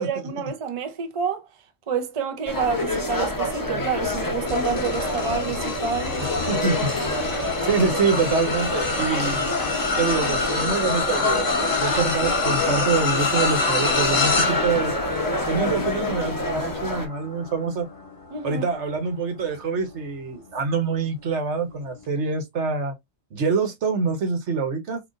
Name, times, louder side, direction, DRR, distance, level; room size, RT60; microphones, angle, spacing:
voice 1, 0.0-1.5 1.9-6.2 18.3-18.6, right 6 dB, 35° right, 0.6 m, -28 dB
sound 1, 2.5-17.1, left 2 dB, 20° left, 0.8 m, -27 dB
sound 2, 4.5-20.0 20.5-20.7 22.0-22.1, left 4 dB, 50° left, 1.1 m, -27 dB
voice 2, 6.2-9.5 10.0-14.9 15.5-17.9 18.4-22.9 23.3-25.0, right 4 dB, 90° right, 1.3 m, -25 dB
3.9 x 2.7 x 2.4 m
omnidirectional pair, 1.2 m